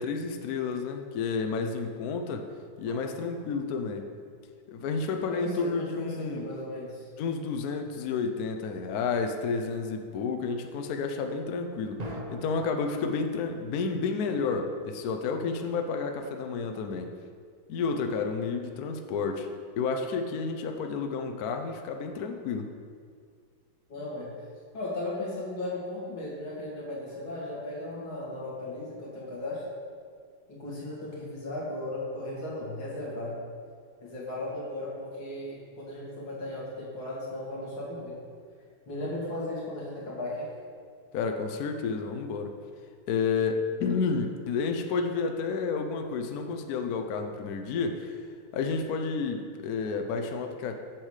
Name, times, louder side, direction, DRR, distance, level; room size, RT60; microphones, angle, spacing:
voice 1, 0.0-2.4 2.8-4.1 4.7-6.5 7.2-17.1 17.7-19.5 19.8-22.7 41.1-42.5 43.1-48.2 48.5-50.8, left 5 dB, 65° left, 4 dB, 1.0 m, -30 dB
sound 1, 2.8-4.9 12.0-12.6, right 1 dB, 40° right, 0.6 m, -43 dB
voice 2, 5.3-7.1 23.9-24.3 24.7-29.6 30.5-33.4 34.0-38.2 38.9-40.5, left 1 dB, 80° left, -6 dB, 2.9 m, -36 dB
7.5 x 7.2 x 4.9 m, 2.1 s
omnidirectional pair, 2.2 m